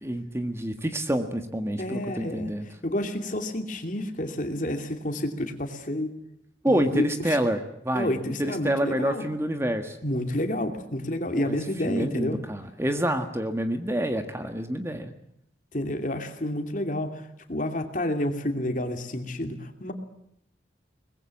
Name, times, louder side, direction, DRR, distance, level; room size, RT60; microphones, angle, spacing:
voice 1, 0.0-2.7 6.6-8.1 8.4-10.0 11.3-11.6 11.8-15.1, right 1 dB, 15° right, 7 dB, 1.6 m, -27 dB
voice 2, 1.8-2.5 2.8-6.2 6.7-7.4 7.9-9.2 10.0-12.4 15.7-19.9, left 1 dB, 45° left, 6 dB, 2.7 m, -30 dB
23.0 x 20.5 x 7.7 m, 0.75 s
head